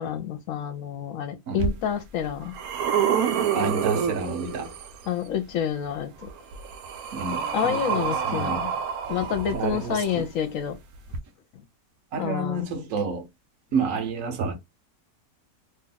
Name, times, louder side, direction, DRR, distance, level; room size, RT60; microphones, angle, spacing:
voice 1, 0.0-2.5 5.1-6.3 7.5-8.7 9.1-10.8 11.5-11.6 12.2-12.6, left 8 dB, 70° left, 1.0 m, -28 dB
sound 1, 1.6-1.7 2.2-5.0 6.2-10.1 11.1-11.2, right 8 dB, 85° right, 1.1 m, -28 dB
voice 2, 3.5-4.7 7.1-8.8 9.5-10.3 12.1-13.3 13.7-14.6, right 4 dB, 70° right, 1.1 m, -30 dB
2.9 x 2.3 x 3.9 m
omnidirectional pair, 1.5 m